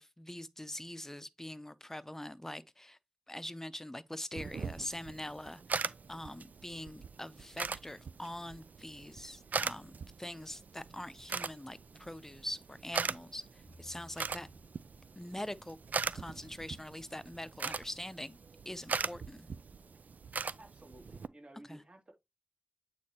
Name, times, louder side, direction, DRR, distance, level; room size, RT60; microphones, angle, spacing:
voice 1, 0.0-3.0 3.3-13.5 13.8-14.5 15.2-15.8 16.1-18.4 18.7-19.5 21.7-21.8, left 1 dB, 15° left, 0.6 m, -43 dB
sound 1, 4.3-21.3, right 5 dB, 80° right, 0.3 m, -41 dB
sound 2, 13.6-16.8, equal, 15° right, 2.5 m, -61 dB
voice 2, 20.6-22.1, right 1 dB, 45° right, 2.5 m, -54 dB
8.5 x 4.1 x 2.9 m
wide cardioid pair, 50°, 3 cm